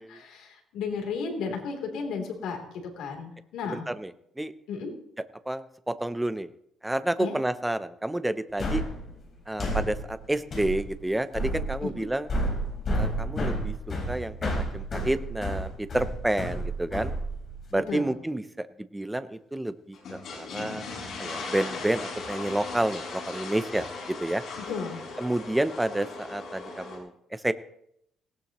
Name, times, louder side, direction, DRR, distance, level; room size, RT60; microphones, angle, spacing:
voice 1, 0.1-3.9 4.7-4.9 7.2-7.3 11.8-12.1 17.7-18.2 24.6-25.0, left 5 dB, 70° left, 2 dB, 3.2 m, -34 dB
voice 2, 3.6-4.1 4.4-4.5 5.5-6.5 6.8-8.8 9.5-12.3 12.9-13.7 14.1-17.1 17.7-18.7 18.9-20.9 21.2-24.4 25.2-27.5, right 1 dB, 5° right, 12 dB, 0.6 m, -29 dB
sound 1, 8.6-17.7, right 1 dB, 30° left, 4.3 m, -31 dB
sound 2, 19.9-27.0, left 3 dB, 50° left, 6.0 m, -38 dB
18.5 x 17.5 x 3.0 m, 0.74 s
cardioid pair, 175°, 0 cm